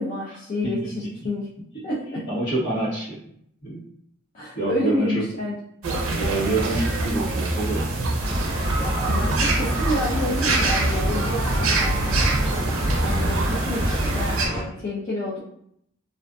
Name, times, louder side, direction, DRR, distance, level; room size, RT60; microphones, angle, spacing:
voice 1, 0.0-1.4 1.8-2.2 4.3-5.5 8.8-12.3 13.0-15.4, left 1 dB, 40° left, -8 dB, 0.5 m, -29 dB
voice 2, 0.6-1.3 1.7-1.8 2.3-3.2 3.6-3.8 4.5-5.3 6.1-7.8, right 2 dB, 55° left, -6 dB, 1.1 m, -27 dB
sound 1, 5.8-14.5, right 2 dB, 70° right, 0.5 m, -25 dB
sound 2, 8.2-14.6, equal, 20° right, 0.8 m, -27 dB
2.4 x 2.4 x 2.3 m, 0.71 s
head